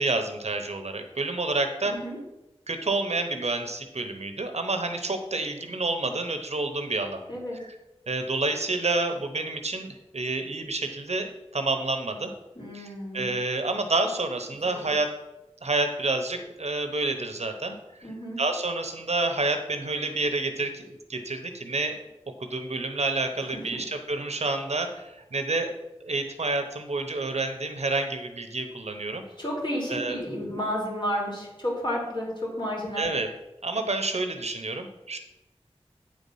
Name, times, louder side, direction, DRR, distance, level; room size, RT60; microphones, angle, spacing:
voice 1, 0.0-1.9 2.7-7.2 7.6-7.7 8.1-12.3 12.7-15.1 15.6-17.8 18.4-22.0 22.4-25.7 26.0-29.2 29.9-30.2 33.0-33.3 33.6-35.2, right 3 dB, 80° right, 7 dB, 0.8 m, -29 dB
voice 2, 1.8-2.2 7.3-7.6 12.6-13.3 14.5-14.9 18.0-18.4 23.5-23.8 29.4-33.2, equal, 45° left, -3 dB, 2.9 m, -32 dB
8.9 x 4.2 x 5.4 m, 0.96 s
wide cardioid pair, 50°, 11 cm